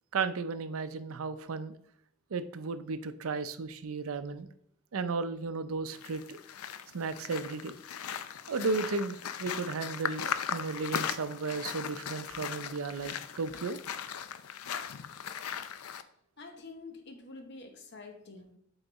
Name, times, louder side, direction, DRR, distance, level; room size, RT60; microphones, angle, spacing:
voice 1, 0.1-1.8 2.3-4.5 4.9-6.4 6.9-7.7 8.5-13.8, right 4 dB, 75° right, 11 dB, 0.5 m, -34 dB
sound 1, 5.9-16.0, left 8 dB, 85° left, 0.5 m, -38 dB
voice 2, 16.4-18.6, left 3 dB, 50° left, 6 dB, 1.0 m, -47 dB
8.0 x 3.9 x 4.1 m, 0.68 s
head